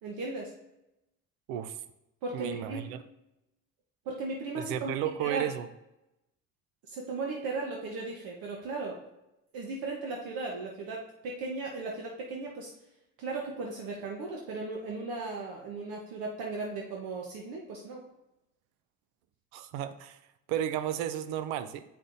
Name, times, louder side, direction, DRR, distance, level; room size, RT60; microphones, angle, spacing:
voice 1, 0.0-0.5 2.2-2.8 4.0-4.9 5.2-5.5 6.9-9.0 9.5-12.7 13.2-18.0, right 3 dB, 70° right, -1 dB, 1.0 m, -36 dB
voice 2, 2.3-3.0 4.6-5.7 19.5-20.2 20.5-21.8, right 10 dB, 90° right, 12 dB, 0.5 m, -33 dB
7.0 x 5.4 x 2.6 m, 0.90 s
supercardioid pair, 65°, 36 cm